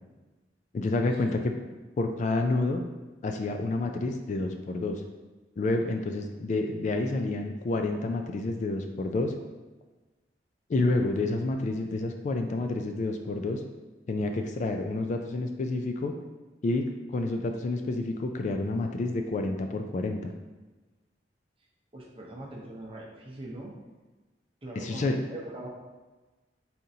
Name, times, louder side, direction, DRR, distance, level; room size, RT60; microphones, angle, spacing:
voice 1, 0.7-1.5 2.0-2.8 3.2-5.0 5.6-9.3 10.7-13.6 14.1-16.1 16.6-20.3 24.8-25.2, left 2 dB, 40° left, 4 dB, 0.3 m, -29 dB
voice 2, 21.9-23.7 24.6-25.7, right 1 dB, 30° right, -2 dB, 0.8 m, -41 dB
4.2 x 3.7 x 2.7 m, 1.2 s
head